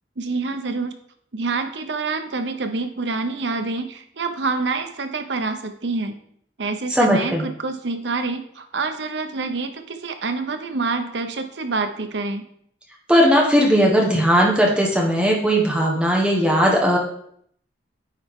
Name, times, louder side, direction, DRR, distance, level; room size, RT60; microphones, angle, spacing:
voice 1, 0.2-0.9 1.3-6.2 6.6-12.4, right 3 dB, 85° right, 7 dB, 0.8 m, -27 dB
voice 2, 6.9-7.4 13.1-17.0, equal, 5° right, -2 dB, 1.2 m, -18 dB
9.5 x 4.3 x 3.7 m, 0.67 s
head